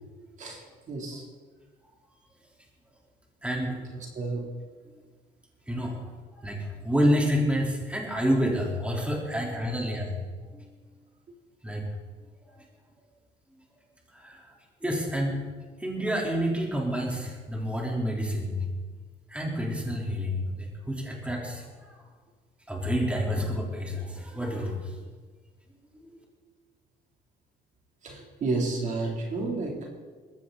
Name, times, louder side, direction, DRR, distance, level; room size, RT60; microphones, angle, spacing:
voice 1, 0.9-1.2 4.1-4.5 28.0-29.9, right 3 dB, 45° right, 0 dB, 3.7 m, -31 dB
voice 2, 3.4-3.8 4.9-5.0 5.7-10.1 10.4-10.7 11.6-11.8 14.1-14.5 14.8-15.4 15.8-18.6 19.3-22.0 22.7-25.0 25.9-26.2, equal, 5° right, -2 dB, 4.2 m, -29 dB
20.5 x 15.5 x 4.3 m, 1.5 s
cardioid pair, 110°, 17 cm